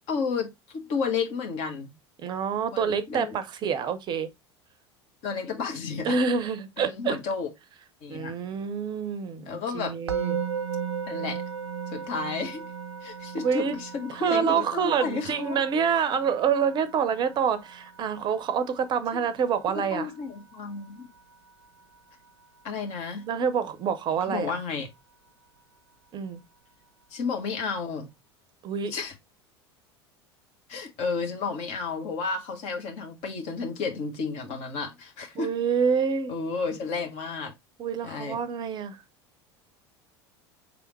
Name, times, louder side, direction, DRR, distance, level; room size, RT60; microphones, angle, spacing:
voice 1, 0.1-1.9 2.7-3.3 5.2-6.2 6.8-7.5 8.0-8.4 9.5-10.0 11.1-11.4 11.9-12.7 13.0-15.6 19.1-19.3 19.7-21.1 22.6-23.3 24.2-24.9 27.1-28.1 28.9-29.1 30.7-35.5 36.3-37.5 38.0-38.4, left 5 dB, 45° left, 1.3 m, -32 dB
voice 2, 2.2-4.3 6.0-7.2 8.1-10.4 13.4-13.7 14.1-20.1 23.3-24.6 26.1-26.4 28.6-28.9 35.4-36.3 37.8-39.0, right 6 dB, 30° right, 0.6 m, -27 dB
Musical instrument, 10.1-21.2, right 7 dB, 75° right, 0.5 m, -37 dB
5.0 x 3.4 x 3.1 m
figure-of-eight pair, 75°, 14 cm